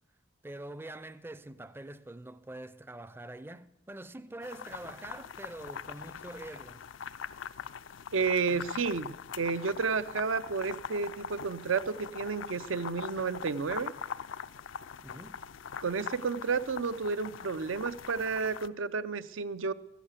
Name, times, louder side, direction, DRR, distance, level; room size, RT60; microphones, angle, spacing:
voice 1, 0.4-6.8 8.5-8.6 15.0-15.4, right 1 dB, 10° right, 0.4 m, -45 dB
sound 1, 4.4-18.7, left 7 dB, 70° left, 0.4 m, -43 dB
voice 2, 8.1-13.9 15.8-19.7, right 5 dB, 85° right, 0.6 m, -31 dB
13.5 x 11.5 x 8.2 m
head